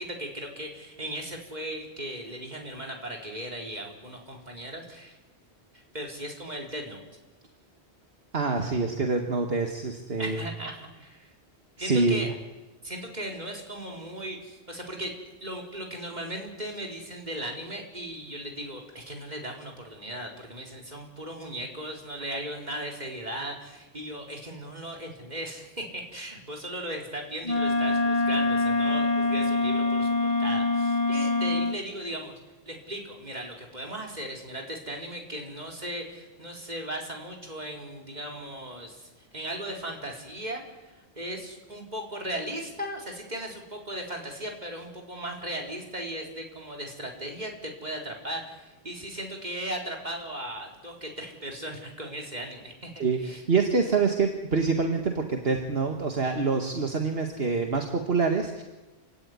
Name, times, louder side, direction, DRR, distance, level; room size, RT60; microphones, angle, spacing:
voice 1, 0.0-5.2 5.9-7.0 10.2-11.3 11.8-12.3 12.8-15.1 15.4-32.3 32.7-53.4, right 1 dB, 40° right, 1 dB, 4.4 m, -37 dB
voice 2, 8.3-10.4 11.8-12.3 53.0-58.6, right 4 dB, 65° right, 4 dB, 2.0 m, -26 dB
Wind instrument woodwind instrument, 27.4-31.8, left 2 dB, 40° left, 1.2 m, -25 dB
28.5 x 17.0 x 9.8 m, 1.1 s
omnidirectional pair, 1.1 m